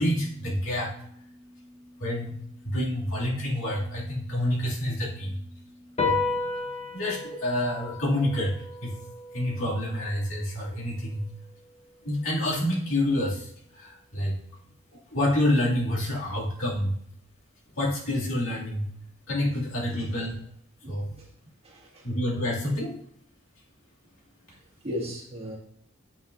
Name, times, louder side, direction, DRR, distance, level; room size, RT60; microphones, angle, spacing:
voice 1, 0.0-6.3 6.9-8.5 8.8-8.9 9.3-11.3 12.0-13.5 13.7-14.3 14.9-16.9 17.8-18.9 19.3-20.3 20.9-21.1 22.0-23.0, left 1 dB, 75° left, -5 dB, 2.5 m, -28 dB
sound 1, 6.0-12.7, left 4 dB, 30° left, 0.9 m, -34 dB
voice 2, 19.9-20.3 20.8-21.3 21.6-22.1 24.5-24.6 24.8-25.6, left 1 dB, 30° right, -4 dB, 2.1 m, -37 dB
8.5 x 5.9 x 2.6 m, 0.67 s
head